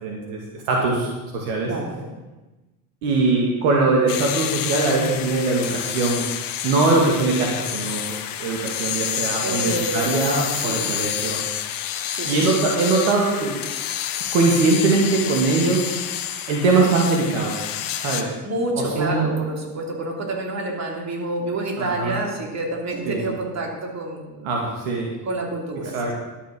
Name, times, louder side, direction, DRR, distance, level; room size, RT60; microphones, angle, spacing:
voice 1, 0.0-1.7 3.0-6.3 6.6-8.0 8.4-11.4 12.2-13.6 14.3-16.0 16.5-17.5 18.0-18.3 18.8-19.3 21.8-22.2 23.1-23.2 24.4-25.1 25.9-26.1, right 3 dB, 70° right, -1 dB, 2.3 m, -21 dB
voice 2, 1.7-2.1 9.4-10.8 12.1-12.4 18.4-24.5 25.2-26.1, right 2 dB, 35° right, 0 dB, 3.3 m, -28 dB
sound 1, 4.1-18.2, left 10 dB, 50° left, 1.2 m, -29 dB
12.0 x 7.1 x 6.2 m, 1.1 s
hypercardioid pair, 75°, 44 cm